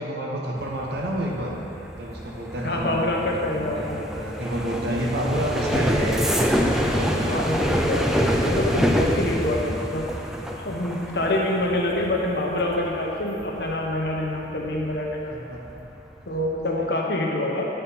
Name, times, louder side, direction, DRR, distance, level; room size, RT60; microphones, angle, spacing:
voice 1, 0.0-1.5 1.9-6.3 6.6-7.5 10.7-11.0 15.3-15.8 16.8-16.9, right 1 dB, 70° right, -2 dB, 0.9 m, -30 dB
sound 1, 0.6-15.2 15.6-16.0 16.3-16.6, equal, 5° right, 0.4 m, -26 dB
voice 2, 2.6-4.0 7.2-8.1 8.4-10.1 10.5-15.3 16.3-17.7, left 1 dB, 65° left, -1 dB, 1.0 m, -26 dB
8.7 x 4.4 x 5.5 m, 2.9 s
head